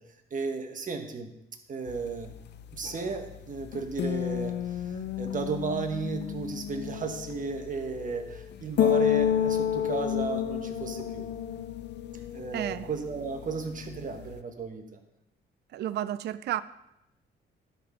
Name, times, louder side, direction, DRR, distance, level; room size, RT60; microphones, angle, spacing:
voice 1, 0.3-1.3 1.7-2.3 2.7-11.3 12.3-15.0, right 4 dB, 40° right, 5 dB, 1.3 m, -34 dB
sound 1, 1.9-14.4, left 9 dB, 60° left, 0.6 m, -31 dB
voice 2, 12.5-12.9 15.7-16.6, right 12 dB, 60° right, 15 dB, 0.4 m, -31 dB
12.0 x 4.1 x 5.6 m, 0.86 s
cardioid pair, 90°, 20 cm